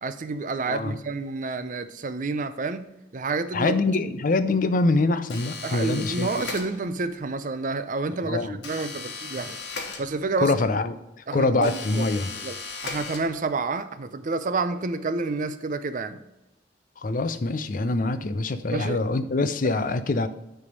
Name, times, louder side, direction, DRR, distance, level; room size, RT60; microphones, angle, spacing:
voice 1, 0.0-3.8 5.6-9.6 10.0-10.5 11.3-12.1 12.3-16.2 18.7-19.0, right 3 dB, 45° right, 12 dB, 0.5 m, -29 dB
voice 2, 0.7-1.0 3.5-6.3 8.2-8.6 10.4-12.3 17.0-20.3, left 3 dB, 45° left, 11 dB, 0.5 m, -24 dB
sound 1, 5.3-7.1 8.6-10.5 11.6-13.6, left 4 dB, 70° left, 1.5 m, -37 dB
9.7 x 3.4 x 5.3 m, 0.92 s
head